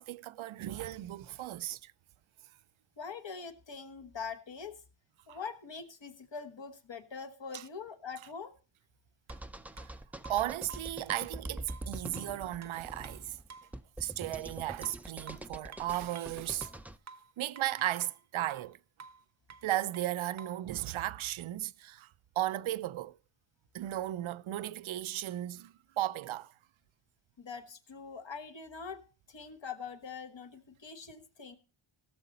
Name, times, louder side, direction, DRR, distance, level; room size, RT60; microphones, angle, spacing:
voice 1, 0.0-1.9 5.3-5.4 7.5-7.6 9.8-9.9 10.3-13.4 14.0-16.7 17.4-18.8 19.6-23.2 23.7-26.5, right 13 dB, 70° right, 0.5 m, -35 dB
voice 2, 3.0-4.8 5.3-8.6 27.4-29.0 29.3-31.6, left 5 dB, 60° left, 1.4 m, -43 dB
sound 1, 9.3-17.0, right 1 dB, 5° right, 0.4 m, -45 dB
sound 2, 9.3-9.4 9.8-9.9 10.2-11.0 11.7-13.8 14.8-16.4 16.6-18.2 18.5-18.7 19.0-19.2 19.5-20.6, right 5 dB, 35° right, 0.7 m, -52 dB
17.5 x 6.6 x 4.0 m
wide cardioid pair, 90°, 50 cm